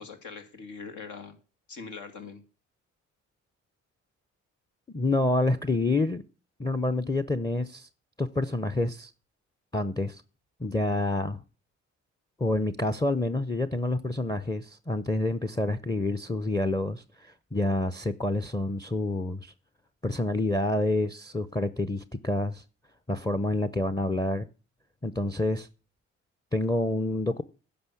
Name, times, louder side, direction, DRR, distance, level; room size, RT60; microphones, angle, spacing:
voice 1, 0.0-1.4 1.7-2.4, left 5 dB, 75° left, 2.4 m, -42 dB
voice 2, 4.9-6.2 6.6-7.9 8.2-9.1 9.7-10.2 10.6-11.4 12.4-19.5 20.0-22.6 23.1-24.5 25.0-25.7 26.5-27.4, left 2 dB, 15° left, 0.7 m, -28 dB
10.5 x 5.9 x 8.3 m
cardioid pair, 90°, 30 cm